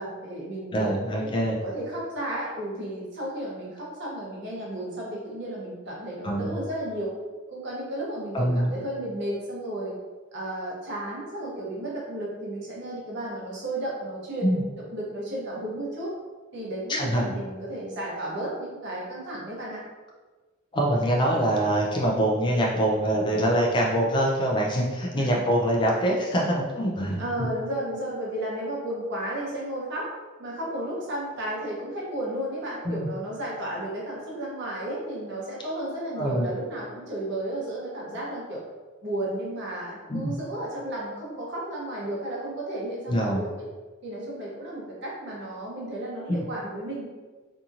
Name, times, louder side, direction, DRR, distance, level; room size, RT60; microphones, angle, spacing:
voice 1, 0.0-7.1 7.5-10.0 10.3-16.1 16.5-19.8 25.1-25.4 27.2-30.1 30.4-38.6 39.0-43.5 44.0-47.1, right 1 dB, 55° right, -5 dB, 0.8 m, -33 dB
voice 2, 0.7-1.6 6.2-6.5 8.3-8.7 14.4-14.6 16.9-17.3 20.7-27.5 32.9-33.1 36.2-36.5 40.1-40.3 43.1-43.4 46.3-46.4, right 1 dB, 20° left, -2 dB, 0.3 m, -24 dB
2.8 x 2.6 x 2.4 m, 1.3 s
head